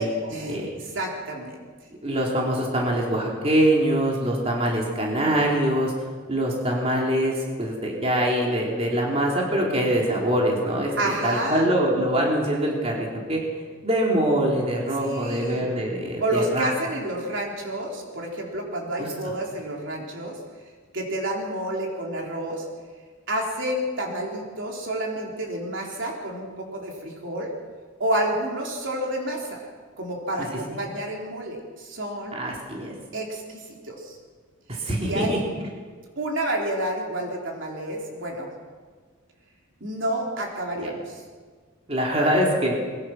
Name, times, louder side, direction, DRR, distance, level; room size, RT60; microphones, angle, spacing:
voice 1, 0.0-1.6 11.0-11.7 15.0-15.7 16.2-20.4 20.9-22.7 23.3-27.5 28.0-29.7 30.0-32.4 33.1-34.2 35.0-35.3 36.2-38.5 39.8-41.2, right 1 dB, 55° right, -1 dB, 3.9 m, -29 dB
voice 2, 2.0-5.9 6.3-13.4 13.8-16.7 19.0-19.3 32.3-32.9 34.7-35.4 40.8-41.0 41.9-42.7, right 1 dB, 30° right, -2 dB, 3.8 m, -24 dB
22.5 x 22.5 x 6.2 m, 1.5 s
head